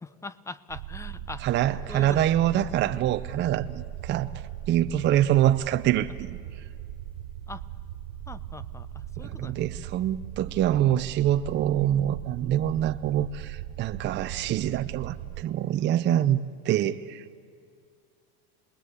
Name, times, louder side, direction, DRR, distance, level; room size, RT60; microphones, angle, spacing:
voice 1, 0.0-1.5 1.9-2.3 7.5-7.6 8.3-9.6, left 3 dB, 10° left, 0.6 m, -41 dB
sound 1, 0.7-15.4, right 12 dB, 75° right, 1.7 m, -39 dB
voice 2, 1.4-4.3 4.7-6.4 9.2-17.4, right 12 dB, 35° right, 0.7 m, -25 dB
27.5 x 20.5 x 8.2 m
supercardioid pair, 135°, 33 cm